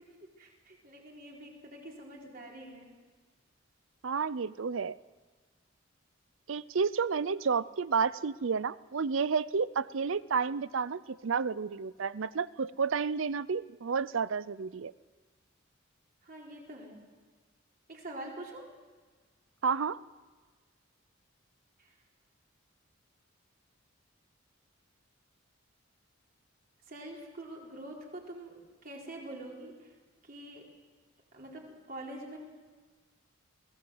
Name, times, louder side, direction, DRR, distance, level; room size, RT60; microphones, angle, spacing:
voice 1, 0.0-3.0 16.2-17.0 17.9-18.8 21.8-21.9 26.9-29.9 30.2-30.7 31.3-32.4, right 1 dB, 45° right, -1 dB, 4.3 m, -46 dB
voice 2, 4.0-5.0 6.5-14.9 19.6-20.0, right 5 dB, 75° right, 18 dB, 0.6 m, -31 dB
22.0 x 17.0 x 7.9 m, 1.4 s
head